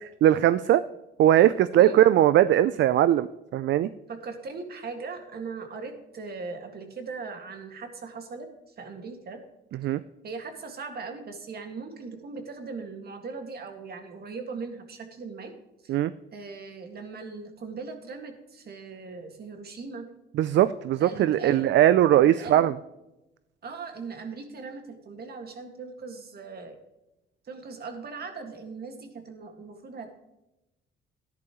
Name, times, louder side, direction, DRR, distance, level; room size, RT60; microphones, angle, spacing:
voice 1, 0.2-0.8 1.2-3.9 9.8-10.0 15.9-16.1 20.3-22.7, right 12 dB, 65° right, 15 dB, 0.4 m, -20 dB
voice 2, 4.1-9.4 10.2-15.5 15.8-16.0 16.3-20.0 21.0-21.7 22.2-22.7 23.6-26.8 27.4-30.2, right 4 dB, 50° right, 5 dB, 2.1 m, -39 dB
13.5 x 10.5 x 3.1 m, 0.95 s
cardioid pair, 90°, 20 cm